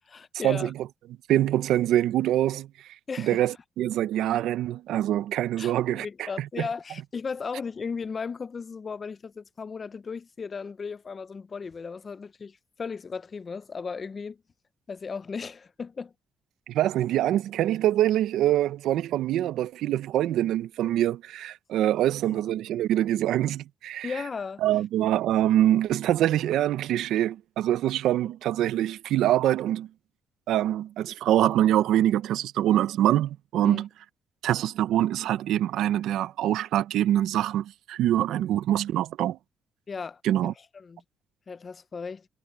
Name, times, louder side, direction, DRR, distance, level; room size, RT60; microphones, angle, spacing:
voice 1, 0.1-0.7 3.1-3.4 5.6-14.4 14.9-16.1 22.0-22.4 24.0-24.6 33.6-33.8 39.9-41.0 41.5-42.3, left 5 dB, 40° left, 0.7 m, -36 dB
voice 2, 1.3-2.7 3.2-6.1 16.7-24.1 24.6-29.9 30.5-33.9 34.4-39.4 40.2-40.5, right 12 dB, 85° right, 0.7 m, -24 dB
cardioid pair, 90°, 0 cm